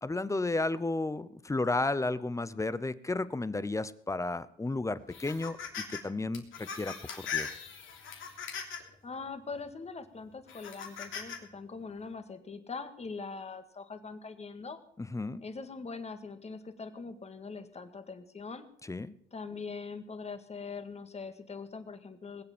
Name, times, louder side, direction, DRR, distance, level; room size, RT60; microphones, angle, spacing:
voice 1, 0.0-5.6 5.9-7.5 15.0-15.4 18.9-19.1, left 2 dB, 15° left, 16 dB, 0.8 m, -33 dB
sound 1, 5.1-6.0 6.3-8.9 9.5-9.7 10.5-11.4, left 7 dB, 80° left, 3.3 m, -39 dB
voice 2, 9.0-14.8 15.4-18.7 19.3-22.4, left 4 dB, 35° left, 9 dB, 1.9 m, -42 dB
20.0 x 8.2 x 7.3 m, 0.68 s
cardioid pair, 90°, 20 cm